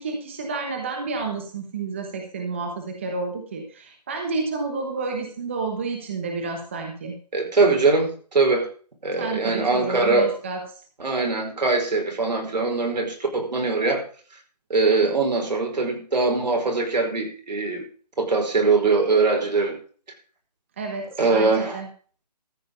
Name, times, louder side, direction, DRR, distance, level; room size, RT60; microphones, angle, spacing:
voice 1, 0.0-7.2 9.2-10.6 20.8-21.9, right 4 dB, 20° right, 3 dB, 1.1 m, -30 dB
voice 2, 7.3-8.7 9.0-10.3 11.0-14.0 14.7-17.8 18.2-19.8 21.2-21.8, right 3 dB, 80° right, 2 dB, 5.2 m, -22 dB
14.0 x 7.7 x 5.4 m, 0.42 s
hypercardioid pair, 180°, 21 cm